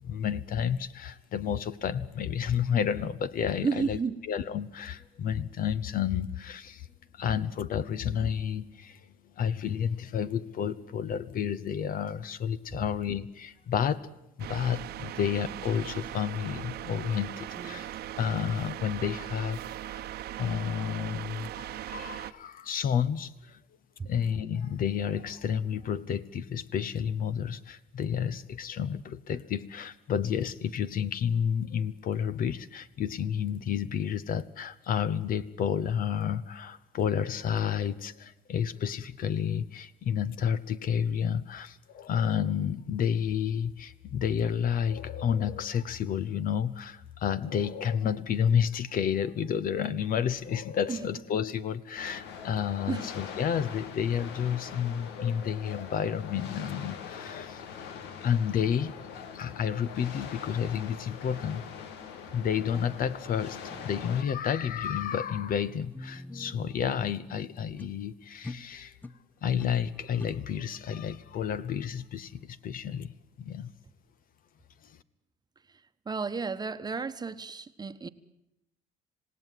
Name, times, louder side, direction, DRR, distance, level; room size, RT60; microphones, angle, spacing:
voice 1, 0.0-4.0 4.3-6.9 7.1-9.0 9.4-14.1 14.4-17.9 18.2-20.1 20.4-23.6 24.1-57.9 58.2-61.6 62.3-63.6 63.8-68.9 69.4-73.7, left 8 dB, 55° left, 15 dB, 1.1 m, -30 dB
voice 2, 3.6-4.2 17.6-17.8 24.0-24.1 50.9-51.0 52.9-53.1 76.1-78.1, right 5 dB, 25° right, 10 dB, 1.2 m, -32 dB
sound 1, 14.4-22.3, right 13 dB, 70° right, 1.1 m, -39 dB
sound 2, 52.0-64.2, left 7 dB, 90° left, 2.0 m, -43 dB
sound 3, 63.7-68.0 68.4-69.2 69.6-70.3, left 2 dB, 10° left, 0.8 m, -45 dB
27.0 x 18.0 x 9.3 m, 0.87 s
cardioid pair, 110°, 17 cm